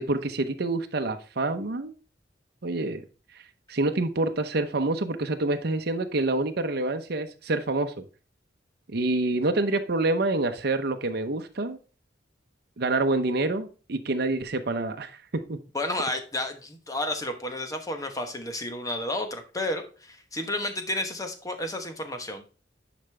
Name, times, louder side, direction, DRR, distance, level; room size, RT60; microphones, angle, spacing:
voice 1, 0.0-1.9 2.6-3.0 3.7-8.0 8.9-11.8 12.8-15.6, right 2 dB, 60° right, 6 dB, 0.8 m, -27 dB
voice 2, 15.7-22.4, left 1 dB, 20° left, 6 dB, 1.0 m, -31 dB
10.5 x 5.0 x 3.3 m, 0.36 s
head